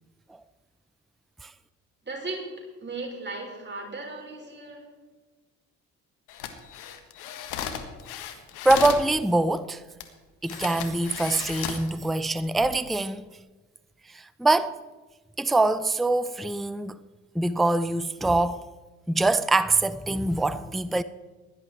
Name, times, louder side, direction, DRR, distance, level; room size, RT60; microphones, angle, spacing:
voice 1, 2.0-2.5 2.8-4.8, right 3 dB, 25° right, 4.9 m, -36 dB
sound 1, 6.3-9.1 10.0-10.1 10.4-11.9 12.4-12.7, left 9 dB, 70° left, 1.5 m, -35 dB
voice 2, 8.6-9.8 10.4-13.2 14.1-14.8 15.4-17.0 17.3-18.6 19.1-21.0, right 2 dB, ahead, 0.5 m, -24 dB
16.5 x 11.0 x 4.5 m
hypercardioid pair, 50°, 40 cm